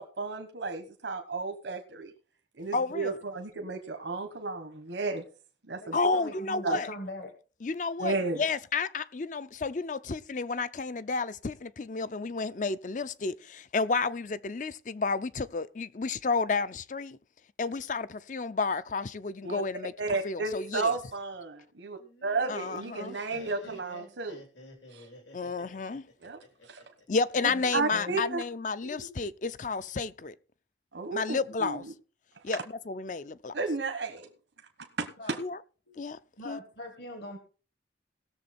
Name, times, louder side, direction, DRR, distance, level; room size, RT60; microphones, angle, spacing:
voice 1, 0.0-2.1 2.6-5.2 5.7-6.0 6.6-6.8 8.0-8.4 19.4-19.6 20.0-24.4 24.9-25.0 26.2-26.8 27.7-28.4 30.9-31.9 33.5-34.3 35.0-35.4, right 3 dB, 80° right, 1.2 m, -33 dB
voice 2, 2.7-3.2 5.9-6.9 7.6-17.2 17.6-19.9 20.2-20.9 22.5-23.2 25.3-26.0 27.1-30.4 31.1-31.8 32.4-33.6 35.4-35.6 36.0-36.2 36.4-36.6, left 4 dB, 45° left, 0.5 m, -31 dB
voice 3, 5.8-7.3 27.5-27.6 27.9-28.2 28.8-29.1 35.2-35.4 36.4-37.4, left 1 dB, 65° left, 1.8 m, -41 dB
Laughter, 22.0-27.0, left 1 dB, 80° left, 3.3 m, -50 dB
18.0 x 7.0 x 4.2 m
head